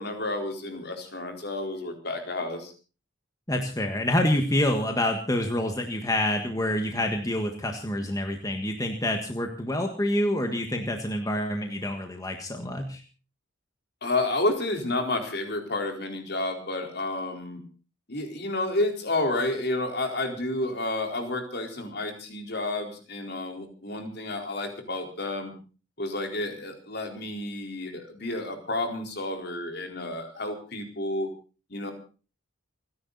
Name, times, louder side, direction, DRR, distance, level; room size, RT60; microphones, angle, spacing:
voice 1, 0.0-2.7 14.0-17.6 18.1-25.5 26.0-31.3 31.7-31.9, left 2 dB, 50° left, 4 dB, 4.3 m, -30 dB
voice 2, 3.5-13.0, left 1 dB, 15° left, 4 dB, 1.6 m, -27 dB
29.5 x 10.5 x 4.1 m, 0.36 s
head